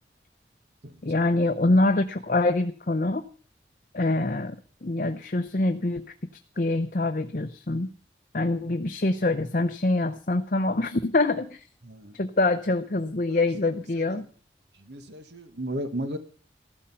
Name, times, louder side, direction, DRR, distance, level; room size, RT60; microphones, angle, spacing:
voice 1, 1.0-3.3 3.9-4.6 4.8-6.1 6.6-7.9 8.3-11.6 12.2-14.3, left 2 dB, 50° left, 8 dB, 0.8 m, -25 dB
voice 2, 11.8-12.2 13.3-14.2 14.7-16.2, right 1 dB, 80° right, 8 dB, 1.8 m, -36 dB
14.5 x 12.5 x 5.7 m, 0.42 s
head